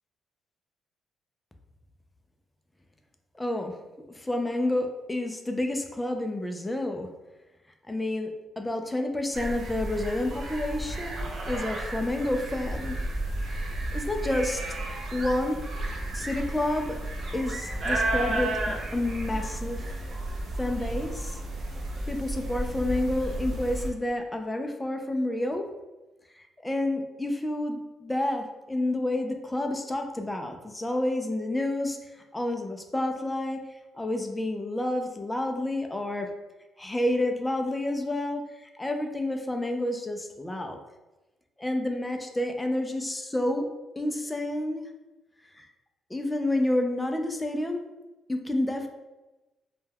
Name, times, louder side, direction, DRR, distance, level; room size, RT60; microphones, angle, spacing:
voice 1, 3.3-3.8 4.1-7.1 7.9-13.0 13.9-14.6 15.1-15.6 16.1-17.0 17.3-18.6 18.9-19.8 20.6-21.4 22.1-25.7 26.6-32.0 32.3-33.6 34.0-36.3 36.8-38.4 38.8-40.8 41.6-43.7 44.0-44.9 45.6-45.7 46.1-47.8 48.3-48.9, left 1 dB, 15° left, 4 dB, 0.3 m, -29 dB
sound 1, 9.3-23.9, right 1 dB, 50° right, 0.5 m, -32 dB
2.2 x 2.1 x 3.3 m, 1.1 s
cardioid pair, 90°, 0 cm